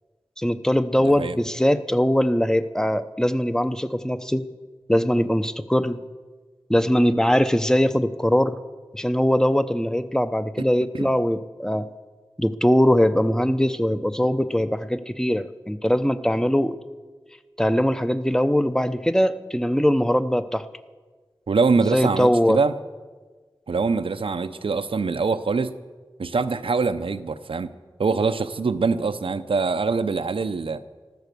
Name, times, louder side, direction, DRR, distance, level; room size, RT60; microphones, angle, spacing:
voice 1, 0.4-4.5 4.9-6.0 6.7-8.6 8.9-11.9 12.4-16.8 17.6-20.6 21.9-22.6, equal, 5° left, 11 dB, 0.8 m, -21 dB
voice 2, 1.0-1.4 10.9-11.1 21.5-22.7 23.7-25.7 26.2-27.7 28.0-30.8, right 4 dB, 90° right, 10 dB, 0.7 m, -24 dB
14.0 x 13.0 x 6.8 m, 1.4 s
wide cardioid pair, 50°, 9 cm